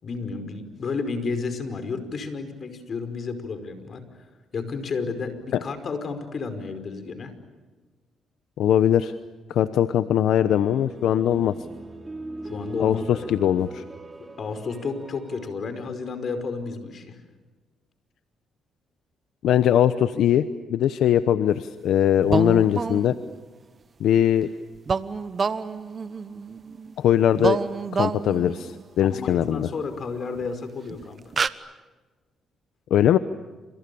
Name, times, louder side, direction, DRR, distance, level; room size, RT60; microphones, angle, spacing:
voice 1, 0.0-4.0 4.5-7.3 12.4-13.2 14.4-17.2 29.0-31.2, left 4 dB, 50° left, 9 dB, 5.2 m, -32 dB
voice 2, 8.6-9.1 9.5-11.5 12.8-13.0 13.3-13.8 19.4-23.2 24.0-24.5 27.0-27.6 27.9-29.7 32.9-33.2, left 10 dB, 80° left, 12 dB, 0.9 m, -21 dB
sound 1, 10.5-15.5, right 2 dB, 20° right, 3.8 m, -40 dB
sound 2, 22.3-23.4 24.9-26.9 27.3-28.8 30.4-30.5 30.9-31.0 31.3-31.5, right 5 dB, 40° right, 1.2 m, -28 dB
30.0 x 28.0 x 7.1 m, 1.3 s
cardioid pair, 90°, 0 cm